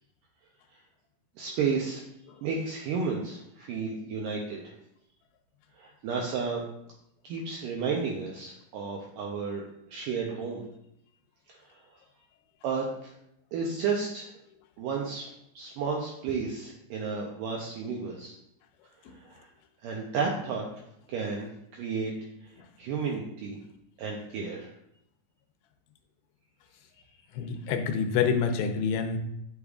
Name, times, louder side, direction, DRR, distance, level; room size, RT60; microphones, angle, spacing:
voice 1, 1.4-2.0 2.4-4.7 5.8-6.6 7.2-9.6 9.9-10.6 11.5-11.6 12.6-13.1 13.5-14.3 14.8-15.3 15.5-18.3 19.1-19.5 19.8-20.8 21.1-22.1 22.4-22.5 22.8-23.6 24.0-24.7, right 5 dB, 85° right, -1 dB, 1.8 m, -32 dB
voice 2, 27.3-29.2, left 6 dB, 90° left, 6 dB, 2.8 m, -27 dB
8.1 x 6.7 x 2.4 m, 0.78 s
omnidirectional pair, 4.7 m